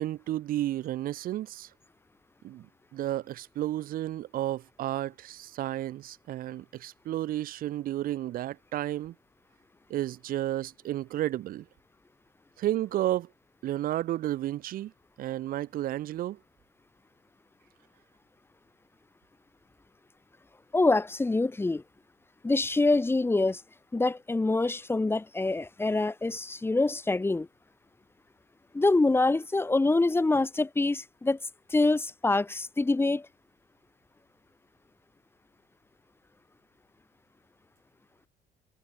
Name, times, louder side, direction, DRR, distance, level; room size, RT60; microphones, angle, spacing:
voice 1, 0.0-1.7 2.4-9.1 9.9-11.7 12.6-13.3 13.6-14.9 15.2-16.4, right 13 dB, 60° right, 0.5 m, -32 dB
voice 2, 20.7-21.8 22.4-23.6 23.9-27.5 28.7-31.4 31.7-33.3, left 2 dB, 15° left, 1.2 m, -25 dB
cardioid pair, 110°, 17 cm